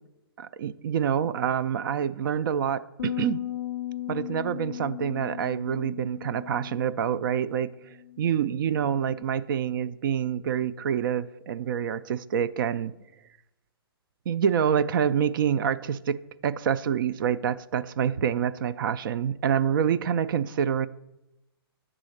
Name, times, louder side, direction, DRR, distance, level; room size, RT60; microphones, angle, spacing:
voice 1, 0.4-3.5 4.1-7.7 8.2-13.0 14.3-20.9, right 8 dB, 55° right, 0.4 m, -27 dB
sound 1, 3.0-9.2, left 14 dB, 85° left, 0.4 m, -37 dB
10.0 x 3.7 x 6.4 m
hypercardioid pair, 145°, 13 cm